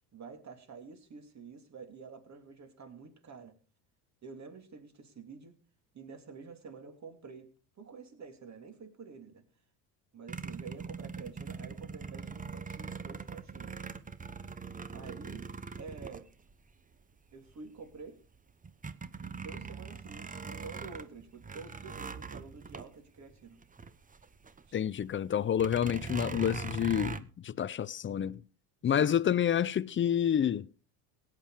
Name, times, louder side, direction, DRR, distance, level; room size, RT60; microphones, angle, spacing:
voice 1, 0.1-3.6 4.2-5.6 5.9-7.5 7.8-9.4 10.1-13.7 14.9-15.5 15.8-16.3 17.3-18.2 19.2-23.6 24.7-24.8 28.8-29.2, right 5 dB, 35° right, 3.0 m, -49 dB
sound 1, 10.3-16.9 17.5-17.6 18.0-24.6 24.9-25.0 25.5-27.2, right 5 dB, 15° right, 0.9 m, -41 dB
voice 2, 24.7-28.4 28.8-30.7, left 9 dB, 25° left, 0.5 m, -29 dB
17.0 x 9.2 x 4.9 m
supercardioid pair, 90°, 47 cm